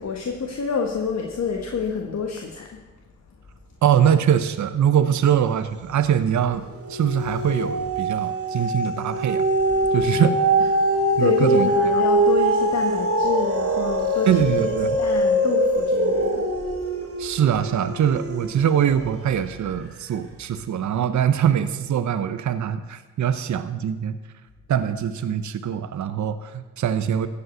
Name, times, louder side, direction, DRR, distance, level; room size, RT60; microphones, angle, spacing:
voice 1, 0.0-2.8 10.9-16.5, left 6 dB, 55° left, 1 dB, 1.4 m, -28 dB
voice 2, 3.8-9.4 9.9-10.4 11.2-11.7 14.3-15.0 17.2-24.2 24.7-27.3, right 9 dB, 65° right, 11 dB, 0.8 m, -22 dB
sound 1, 5.8-6.3 6.7-19.1 19.7-19.8, right 1 dB, 45° right, 2.3 m, -23 dB
14.5 x 5.4 x 8.0 m, 1.2 s
cardioid pair, 55°, 31 cm